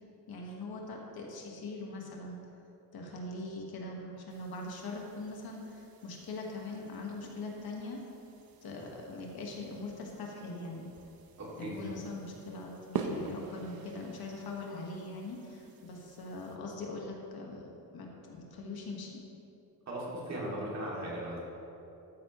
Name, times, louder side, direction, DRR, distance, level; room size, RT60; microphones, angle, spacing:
voice 1, 0.3-2.4 2.9-8.0 8.6-10.9 11.6-19.2, left 2 dB, 65° left, 0 dB, 1.6 m, -42 dB
sound 1, 4.3-16.6, right 5 dB, 65° right, 0.9 m, -46 dB
voice 2, 11.4-11.9 19.9-21.4, right 1 dB, 45° right, -5 dB, 2.5 m, -38 dB
13.5 x 9.5 x 3.1 m, 2.9 s
wide cardioid pair, 175°, 39 cm